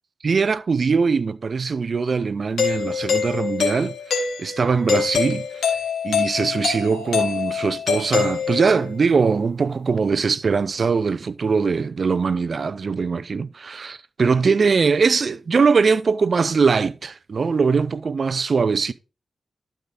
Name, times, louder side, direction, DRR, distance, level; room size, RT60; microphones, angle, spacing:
voice 1, 0.2-5.8 6.0-18.9, right 5 dB, 60° right, 0.6 m, -21 dB
Doorbell, 2.6-8.9, left 6 dB, 85° left, 1.6 m, -25 dB
12.0 x 5.0 x 4.0 m
supercardioid pair, 45°, 0 cm